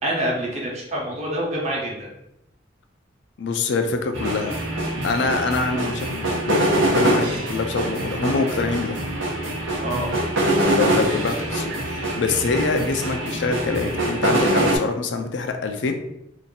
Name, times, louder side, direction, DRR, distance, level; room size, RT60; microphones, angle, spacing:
voice 1, 0.0-2.1 9.8-10.2, right 1 dB, 35° right, -3 dB, 0.9 m, -26 dB
voice 2, 3.4-4.5 5.0-9.0 10.5-15.9, left 4 dB, 70° left, 6 dB, 0.4 m, -25 dB
sound 1, 4.1-14.8, right 1 dB, 85° right, 0.8 m, -24 dB
2.8 x 2.5 x 3.8 m, 0.81 s
head